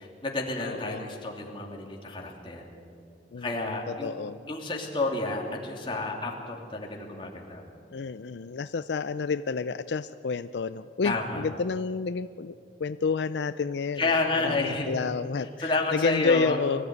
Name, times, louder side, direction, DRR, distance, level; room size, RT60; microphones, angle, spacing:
voice 1, 0.0-2.7 3.4-4.1 4.5-7.6 11.0-11.4 14.0-14.9 15.6-16.6, left 2 dB, 30° left, 0 dB, 2.9 m, -30 dB
voice 2, 0.6-1.1 3.3-4.4 7.9-12.5 12.8-16.8, left 5 dB, 80° left, 13 dB, 0.4 m, -30 dB
23.0 x 15.0 x 9.4 m, 2.4 s
head